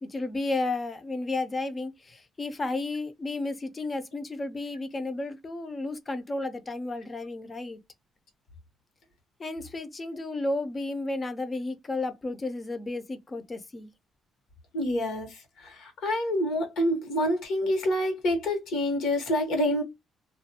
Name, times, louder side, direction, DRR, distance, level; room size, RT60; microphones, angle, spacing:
voice 1, 0.0-7.8 9.4-13.9, left 2 dB, 30° left, 0.6 m, -32 dB
voice 2, 14.7-19.8, left 1 dB, 80° left, 1.1 m, -27 dB
2.4 x 2.2 x 2.6 m
cardioid pair, 90°, 0 cm